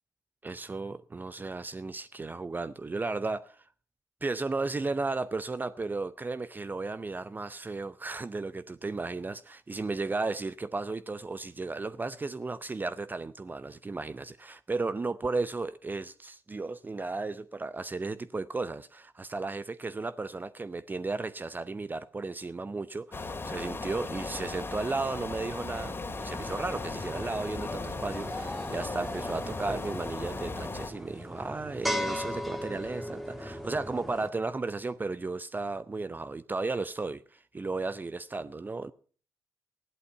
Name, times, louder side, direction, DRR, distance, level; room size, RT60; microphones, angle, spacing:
voice 1, 0.4-3.7 4.2-38.9, right 3 dB, 25° right, 0.6 m, -34 dB
sound 1, 23.1-30.9, left 3 dB, 30° left, 2.2 m, -37 dB
sound 2, 26.2-34.3, left 1 dB, ahead, 1.8 m, -38 dB
14.0 x 11.0 x 5.6 m
hypercardioid pair, 50°, 7 cm